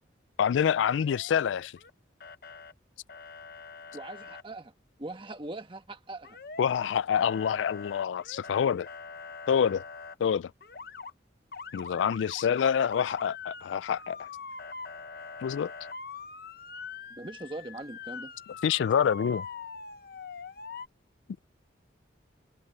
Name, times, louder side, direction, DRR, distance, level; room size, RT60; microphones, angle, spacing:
voice 1, 0.4-1.8 6.6-8.9 9.5-9.8 10.2-10.5 11.7-14.3 15.4-15.7 18.6-19.5, left 8 dB, 75° left, 0.3 m, -26 dB
Motor vehicle (road) / Siren, 0.9-1.9 2.2-2.7 3.1-4.4 6.2-6.9 7.2-10.1 10.6-11.1 11.5-20.9, left 5 dB, 50° left, 0.9 m, -43 dB
voice 2, 3.9-4.7 5.0-6.4 17.1-18.3, right 2 dB, 25° right, 1.3 m, -41 dB
head